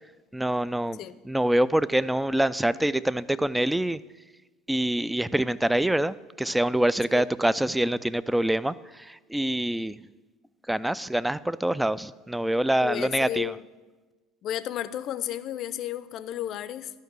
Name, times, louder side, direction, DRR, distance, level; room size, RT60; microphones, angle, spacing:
voice 1, 0.3-1.0 1.2-4.0 4.7-10.0 10.7-13.5, right 1 dB, 5° right, 18 dB, 0.4 m, -25 dB
voice 2, 12.8-13.7 14.4-16.9, left 11 dB, 50° left, 15 dB, 0.5 m, -32 dB
12.0 x 5.9 x 8.1 m, 1.2 s
hypercardioid pair, 70°, 0 cm